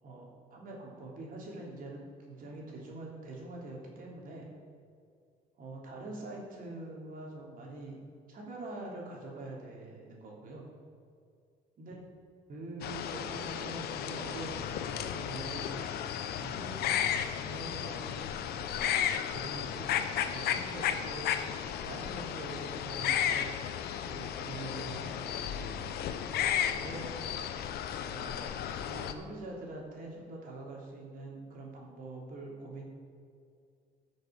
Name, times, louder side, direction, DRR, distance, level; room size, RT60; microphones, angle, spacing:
voice 1, 0.0-4.5 5.6-8.0 8.3-10.7 11.8-12.0 12.5-15.7 16.3-16.9 17.3-18.2 18.6-19.0 19.3-21.3 21.8-23.5 24.0-25.8 26.7-27.1 28.1-28.6 28.9-32.8, right 2 dB, 55° right, -2 dB, 3.1 m, -44 dB
sound 1, 12.8-29.1, left 9 dB, 70° left, 0.8 m, -34 dB
13.5 x 6.5 x 5.2 m, 2.3 s
cardioid pair, 110°, 17 cm